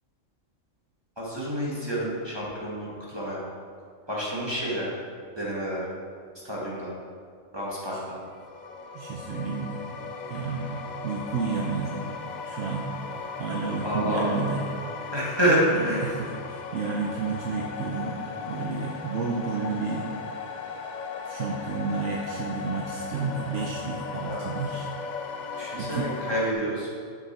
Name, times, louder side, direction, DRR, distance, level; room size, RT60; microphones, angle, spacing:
voice 1, 1.2-3.4 4.1-4.9 5.4-5.8 6.4-6.9 7.5-8.2 13.8-14.4 15.1-16.1 24.3-24.5 25.6-26.9, equal, 20° right, -7 dB, 1.4 m, -28 dB
sound 1, 8.3-26.5, left 5 dB, 65° left, 0.4 m, -37 dB
voice 2, 8.9-9.8 10.3-12.1 12.5-13.0 13.4-14.6 15.0-15.1 15.7-20.1 21.3-25.2 25.6-26.1, right 5 dB, 70° right, 0 dB, 0.9 m, -31 dB
6.6 x 6.5 x 4.3 m, 2.2 s
omnidirectional pair, 1.3 m